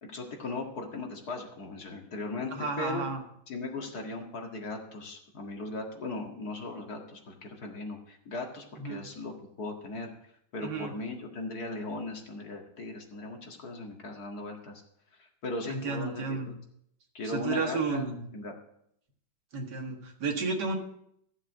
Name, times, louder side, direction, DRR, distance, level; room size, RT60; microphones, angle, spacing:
voice 1, 0.0-3.1 3.5-10.1 10.5-14.8 15.2-16.2 17.1-18.1 18.3-18.5, left 2 dB, 50° left, 1 dB, 2.3 m, -38 dB
voice 2, 2.5-3.2 8.8-9.1 10.6-10.9 15.7-16.5 17.2-18.2 19.5-20.8, right 4 dB, 55° right, 2 dB, 2.3 m, -32 dB
13.5 x 7.2 x 6.1 m, 0.72 s
omnidirectional pair, 2.3 m